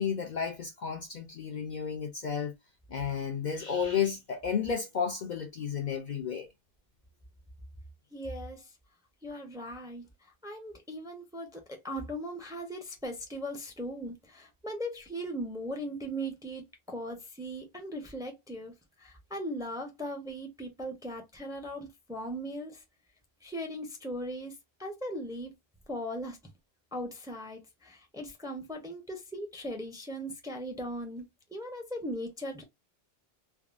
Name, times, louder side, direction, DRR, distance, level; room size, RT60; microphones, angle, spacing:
voice 1, 0.0-2.5 2.9-6.5, left 7 dB, 55° left, 0.6 m, -32 dB
voice 2, 8.1-8.7 9.2-10.1 10.4-22.8 23.4-25.5 25.9-26.4 26.9-32.6, equal, 5° right, 0.5 m, -39 dB
3.4 x 2.0 x 2.4 m
omnidirectional pair, 1.1 m